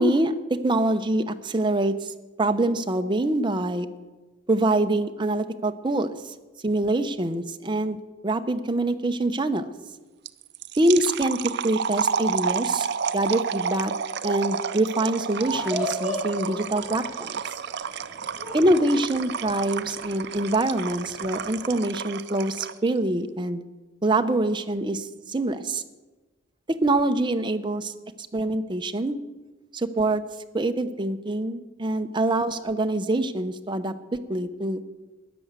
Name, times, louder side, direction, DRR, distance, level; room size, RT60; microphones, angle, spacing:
voice 1, 0.0-2.1 2.4-3.9 4.5-6.3 6.6-8.0 8.2-9.7 10.8-12.9 13.1-13.9 14.2-17.4 18.5-23.6 24.0-25.8 26.7-27.8 28.3-29.2 29.7-30.2 30.5-34.8, right 2 dB, 25° right, 8 dB, 0.7 m, -25 dB
sound 1, 10.3-22.9, right 7 dB, 55° right, 0.5 m, -31 dB
sound 2, 15.3-21.8, equal, 5° right, 4.9 m, -36 dB
13.0 x 10.5 x 8.1 m, 1.2 s
head